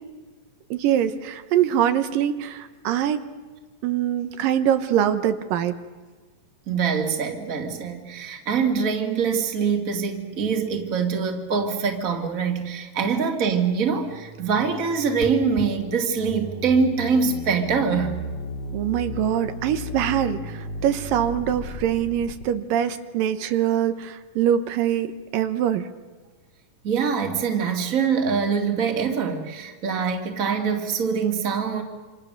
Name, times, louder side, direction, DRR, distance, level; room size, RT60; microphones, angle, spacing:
voice 1, 0.7-3.3 3.8-5.8 18.7-25.9, right 10 dB, 85° right, 9 dB, 2.8 m, -23 dB
voice 2, 6.7-18.2 26.8-31.8, right 6 dB, 30° right, 4 dB, 2.0 m, -24 dB
sound 1, 13.7-22.4, left 1 dB, 50° left, 3.1 m, -35 dB
27.5 x 26.5 x 6.6 m, 1.4 s
omnidirectional pair, 3.9 m